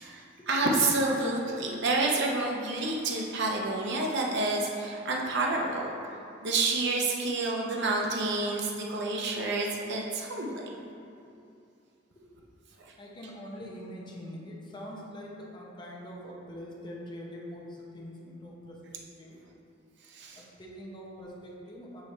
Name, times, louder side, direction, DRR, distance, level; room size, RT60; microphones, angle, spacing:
voice 1, 0.0-5.9 6.4-10.5 12.8-12.9 20.1-20.4, right 2 dB, 65° right, -1 dB, 0.7 m, -29 dB
voice 2, 13.0-19.4 20.3-22.0, equal, 25° left, -3 dB, 0.9 m, -44 dB
6.9 x 3.2 x 4.2 m, 2.6 s
head